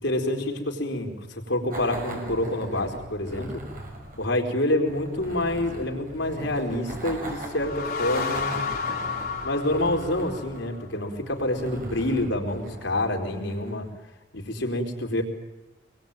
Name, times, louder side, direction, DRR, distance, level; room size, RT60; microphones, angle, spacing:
voice 1, 0.0-3.6 4.2-8.7 9.4-13.9 14.3-15.2, left 1 dB, 90° left, 3 dB, 4.2 m, -27 dB
sound 1, 1.7-13.9, right 1 dB, 45° right, 6.2 m, -40 dB
sound 2, 7.3-10.8, left 5 dB, 50° left, 4.5 m, -32 dB
25.5 x 21.5 x 9.2 m, 1.0 s
head